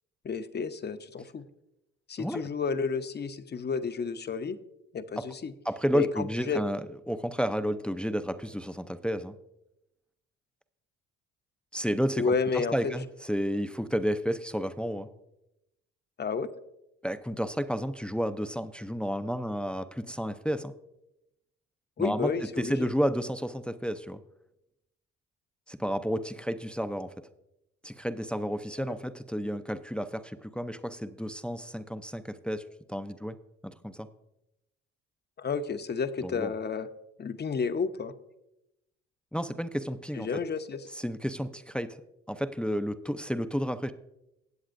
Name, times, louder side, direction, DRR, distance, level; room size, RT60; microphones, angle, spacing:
voice 1, 0.2-1.4 2.1-4.6 4.9-5.5 5.9-6.6 12.2-13.0 16.2-16.5 22.0-22.9 28.8-28.9 35.4-36.9 37.2-38.1 40.2-40.8, left 5 dB, 35° left, 11 dB, 0.8 m, -31 dB
voice 2, 5.6-9.4 11.7-15.1 17.0-20.7 22.0-24.2 25.7-27.1 27.8-33.4 33.6-34.1 36.2-36.5 39.3-40.3 40.9-42.0 42.3-43.9, equal, 5° left, 10 dB, 0.5 m, -31 dB
17.5 x 8.0 x 2.6 m, 0.87 s
supercardioid pair, 65°, 29 cm